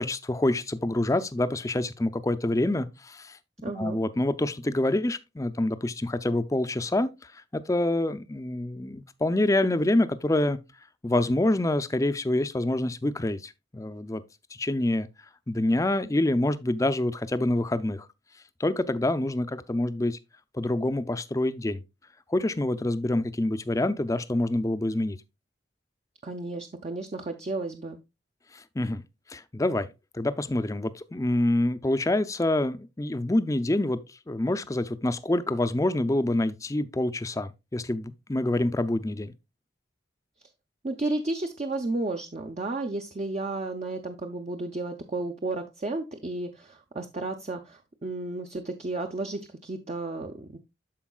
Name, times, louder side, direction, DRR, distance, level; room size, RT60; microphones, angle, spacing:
voice 1, 0.0-3.4 3.8-10.6 11.0-14.2 14.5-15.1 15.5-18.1 18.6-20.2 20.5-21.8 22.3-25.2 28.5-29.0 29.3-29.9 30.1-39.3, left 1 dB, 15° left, 0.5 m, -26 dB
voice 2, 3.6-4.0 26.2-28.0 40.8-50.6, right 2 dB, 35° right, 0.6 m, -33 dB
13.0 x 4.6 x 2.3 m
head